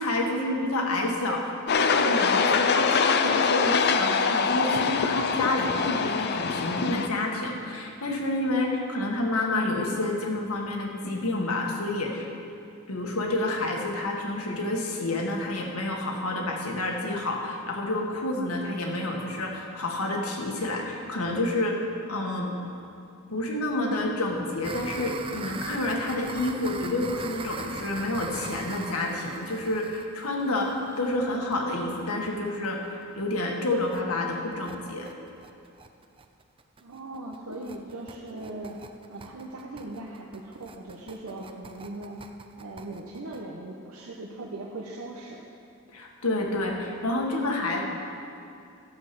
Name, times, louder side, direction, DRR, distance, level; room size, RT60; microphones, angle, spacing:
voice 1, 0.0-12.3 12.9-22.5 23.3-35.1 45.9-47.8, left 2 dB, 85° left, 0 dB, 1.7 m, -29 dB
sound 1, 1.7-7.1, left 5 dB, 50° left, 0.5 m, -24 dB
sound 2, 24.6-32.3 32.6-32.7 33.0-33.1 33.4-33.5 33.8-34.0 34.3-43.4, right 4 dB, 25° right, 0.4 m, -41 dB
voice 2, 36.8-38.8 39.1-42.2 42.6-45.4, right 2 dB, 85° right, -1 dB, 0.9 m, -39 dB
12.5 x 7.4 x 6.0 m, 2.5 s
head